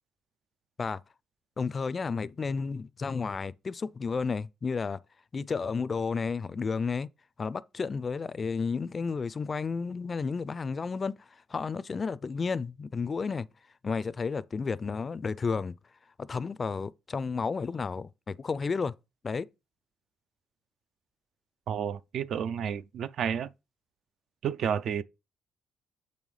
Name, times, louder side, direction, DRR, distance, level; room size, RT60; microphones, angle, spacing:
voice 1, 1.6-5.0 5.3-7.1 7.4-13.5 13.8-15.7 16.2-18.9 19.2-19.5, left 5 dB, 35° left, 0.3 m, -32 dB
voice 2, 21.7-23.5 24.4-25.0, right 8 dB, 65° right, 0.3 m, -31 dB
6.8 x 5.4 x 3.2 m
cardioid pair, 90°, 0 cm